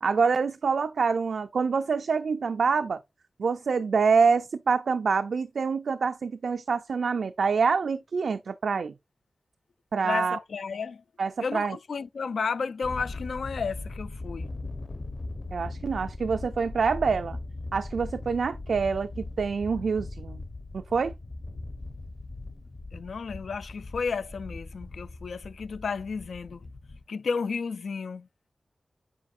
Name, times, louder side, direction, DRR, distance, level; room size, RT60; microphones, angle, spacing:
voice 1, 0.0-3.0 3.4-8.9 9.9-10.4 11.2-11.8 15.5-17.4 17.7-20.4 20.7-21.1, right 5 dB, 85° right, 0.4 m, -26 dB
voice 2, 10.0-11.0 11.4-14.5 22.9-26.6 27.1-28.3, left 5 dB, 85° left, 0.3 m, -32 dB
Thunder, 12.8-27.0, left 2 dB, 45° left, 0.9 m, -39 dB
8.4 x 4.8 x 2.5 m
wide cardioid pair, 100°, 0 cm